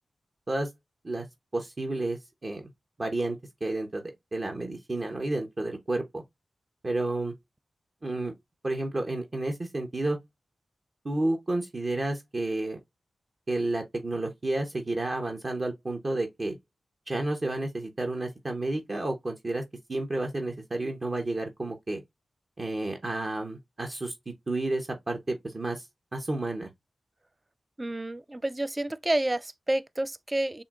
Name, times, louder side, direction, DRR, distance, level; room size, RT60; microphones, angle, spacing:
voice 1, 1.5-2.7 3.0-4.0 4.3-6.2 6.8-7.3 8.0-8.3 8.6-10.2 11.0-12.8 13.5-16.6 17.1-19.6 19.9-22.0 22.6-25.8 26.1-26.7, right 2 dB, 45° right, 1.0 m, -31 dB
voice 2, 27.8-30.6, right 1 dB, 25° right, 0.3 m, -29 dB
6.9 x 2.7 x 2.4 m
cardioid pair, 45°, 0 cm